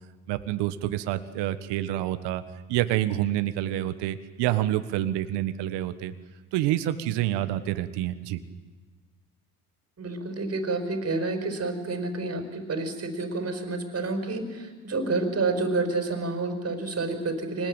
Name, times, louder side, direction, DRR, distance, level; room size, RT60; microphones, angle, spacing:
voice 1, 0.3-2.4 2.7-6.1 6.5-8.4, right 13 dB, 65° right, 11 dB, 1.7 m, -27 dB
voice 2, 10.0-17.7, right 3 dB, 35° right, 7 dB, 5.3 m, -29 dB
26.5 x 19.5 x 9.1 m, 1.3 s
hypercardioid pair, 80°, 44 cm